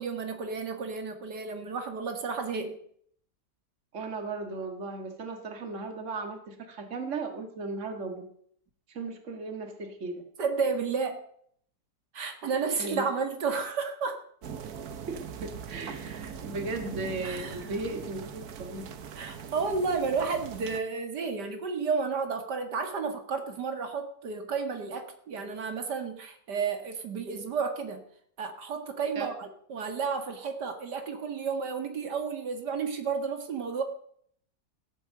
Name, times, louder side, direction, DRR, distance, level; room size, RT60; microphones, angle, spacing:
voice 1, 0.0-2.8 10.4-11.2 12.1-14.2 17.2-17.6 19.2-28.0 28.4-33.8, right 5 dB, 85° right, 6 dB, 2.4 m, -32 dB
voice 2, 3.9-8.3 8.9-10.2 12.8-13.1 15.1-18.8 29.2-29.3, right 3 dB, 45° right, 6 dB, 2.1 m, -36 dB
sound 1, 14.4-20.8, right 7 dB, 65° right, 1.5 m, -41 dB
16.0 x 8.4 x 7.7 m, 0.64 s
omnidirectional pair, 1.7 m